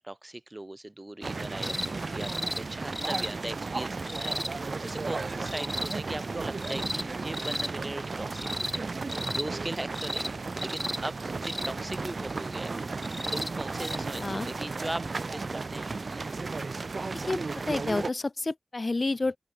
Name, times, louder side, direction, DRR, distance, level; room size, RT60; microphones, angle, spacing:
voice 1, 0.0-8.8 9.3-12.7 13.3-16.3, right 1 dB, 25° right, 3.4 m, -39 dB
sound 1, 1.2-18.1, right 3 dB, 70° right, 4.4 m, -34 dB
sound 2, 1.6-1.9 2.2-2.6 2.9-3.3 4.1-4.5 5.5-5.9 6.6-7.0 7.3-7.7 8.4-8.8 9.1-9.5 9.9-10.3 10.6-11.0 11.4-11.7 13.0-13.5 13.8-14.0 15.1-15.2, left 1 dB, 25° left, 1.7 m, -34 dB
voice 2, 17.7-19.3, left 3 dB, 50° left, 1.0 m, -29 dB
open air
wide cardioid pair, 50°, 0 cm